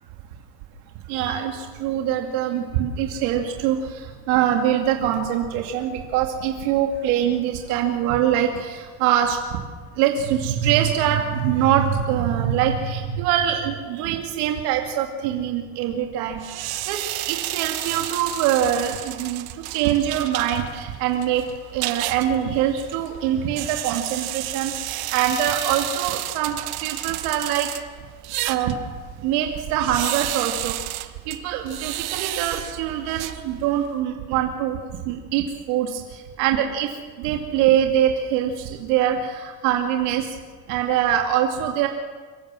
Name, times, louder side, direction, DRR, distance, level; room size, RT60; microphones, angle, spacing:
voice 1, 1.0-9.6 10.0-17.0 17.2-21.4 21.7-27.7 28.4-28.8 29.2-34.8 35.0-36.9 37.2-40.3 40.7-41.9, right 10 dB, 85° right, 3 dB, 2.4 m, -23 dB
sound 1, 16.4-33.9, right 16 dB, 55° right, 1.1 m, -32 dB
24.5 x 15.0 x 7.5 m, 1.5 s
cardioid pair, 140°, 44 cm